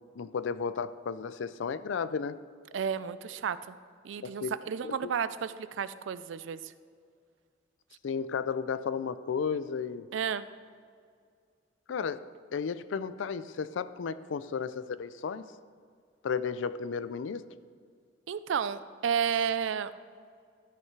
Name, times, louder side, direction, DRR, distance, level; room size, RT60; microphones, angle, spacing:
voice 1, 0.2-2.4 4.2-4.5 4.8-5.1 8.0-10.1 11.9-12.3 12.5-15.5 16.2-17.5, left 6 dB, 80° left, 14 dB, 0.4 m, -33 dB
voice 2, 2.7-3.8 4.0-6.7 10.1-10.4 18.3-19.9, right 7 dB, 80° right, 14 dB, 0.4 m, -32 dB
12.5 x 5.7 x 4.6 m, 2.1 s
head